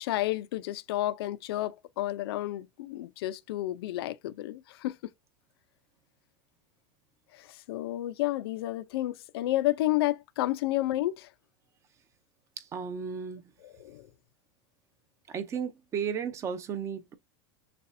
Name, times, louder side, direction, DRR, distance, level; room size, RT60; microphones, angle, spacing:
voice 1, 0.0-5.0 7.3-11.3 13.6-14.1, left 16 dB, 80° left, 0.6 m, -31 dB
voice 2, 12.6-13.5 15.3-17.1, right 7 dB, 25° right, 0.7 m, -34 dB
6.7 x 2.4 x 2.7 m
supercardioid pair, 160°, 13 cm